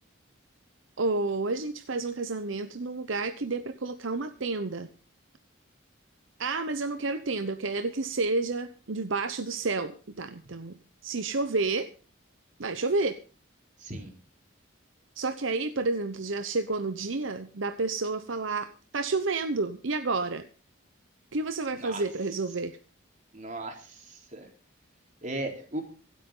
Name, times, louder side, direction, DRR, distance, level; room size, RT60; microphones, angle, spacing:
voice 1, 1.0-4.9 6.4-10.8 11.0-11.9 12.6-13.2 15.2-20.5 21.3-22.8, right 3 dB, 70° right, 9 dB, 0.9 m, -30 dB
voice 2, 13.8-14.1 21.7-22.0 23.3-24.5 25.2-25.8, right 2 dB, 40° right, 2 dB, 3.8 m, -37 dB
25.5 x 8.5 x 3.8 m, 0.37 s
head